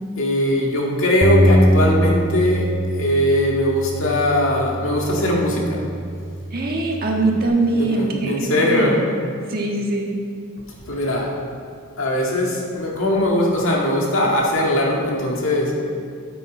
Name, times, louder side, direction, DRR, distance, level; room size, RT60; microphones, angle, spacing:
voice 1, 0.2-5.8 7.7-9.0 10.9-11.3 12.0-15.8, left 1 dB, 65° left, -2 dB, 1.9 m, -20 dB
Bass guitar, 1.2-7.5, equal, 20° right, 0.7 m, -22 dB
voice 2, 6.5-8.9 9.2-10.1, right 2 dB, 45° right, 0 dB, 1.5 m, -22 dB
12.5 x 8.6 x 5.0 m, 2.3 s
head